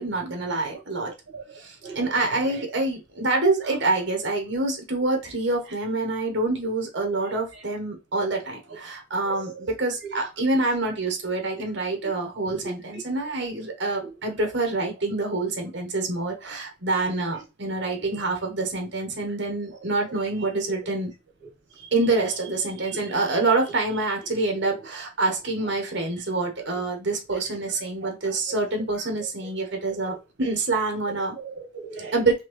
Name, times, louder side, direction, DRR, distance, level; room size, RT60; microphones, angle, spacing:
voice 1, 0.0-1.1 1.5-21.1 21.8-31.4 32.1-32.3, right 3 dB, 60° right, 1.3 m, -26 dB
voice 2, 0.7-2.0 2.4-2.7 7.5-7.6 8.7-8.8 9.2-9.5 10.0-10.3 12.5-12.7 14.0-14.1 17.3-17.4 18.0-18.1 20.7-20.8 28.0-28.1 29.9-30.1 31.1-32.1, right 5 dB, 90° right, 1.0 m, -40 dB
4.1 x 2.7 x 3.1 m
head